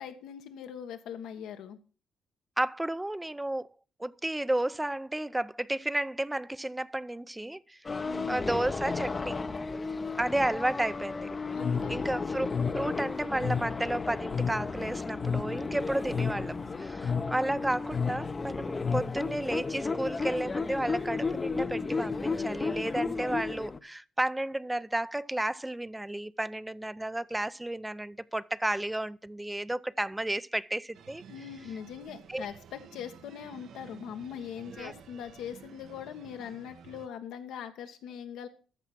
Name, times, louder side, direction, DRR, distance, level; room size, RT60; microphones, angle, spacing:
voice 1, 0.0-1.8 8.0-8.5 11.5-12.0 31.3-38.5, left 8 dB, 85° left, 1.5 m, -41 dB
voice 2, 2.6-3.7 4.0-7.8 8.3-9.4 10.2-11.3 11.9-31.2 32.3-32.5 34.7-34.9, right 1 dB, 10° right, 0.5 m, -32 dB
sound 1, 7.8-23.8, left 4 dB, 30° left, 0.7 m, -34 dB
sound 2, 11.6-19.4, left 6 dB, 55° left, 0.9 m, -34 dB
sound 3, 30.9-37.1, right 7 dB, 70° right, 1.0 m, -52 dB
14.0 x 5.6 x 6.2 m
cardioid pair, 90°, 0 cm